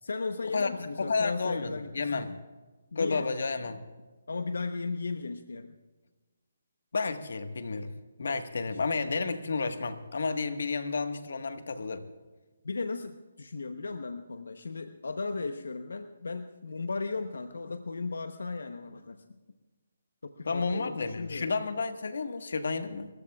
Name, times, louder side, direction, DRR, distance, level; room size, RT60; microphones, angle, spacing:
voice 1, 0.0-2.4 2.9-3.3 4.3-5.8 8.7-8.8 12.6-19.2 20.2-21.6, left 3 dB, 90° left, 8 dB, 0.9 m, -36 dB
voice 2, 0.5-2.3 2.9-3.8 6.9-7.9 8.2-12.0 20.4-23.1, left 4 dB, 70° left, 8 dB, 1.4 m, -31 dB
30.0 x 15.0 x 2.4 m, 1.3 s
hypercardioid pair, 165°, 0 cm